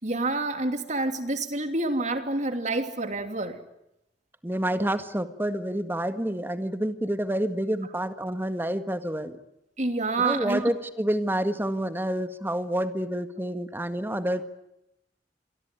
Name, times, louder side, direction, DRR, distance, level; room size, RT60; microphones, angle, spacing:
voice 1, 0.0-3.6 9.8-10.7, right 2 dB, 45° right, 8 dB, 2.9 m, -28 dB
voice 2, 4.4-9.4 10.2-14.5, right 1 dB, 10° right, 10 dB, 1.7 m, -28 dB
28.0 x 23.0 x 9.2 m, 0.86 s
head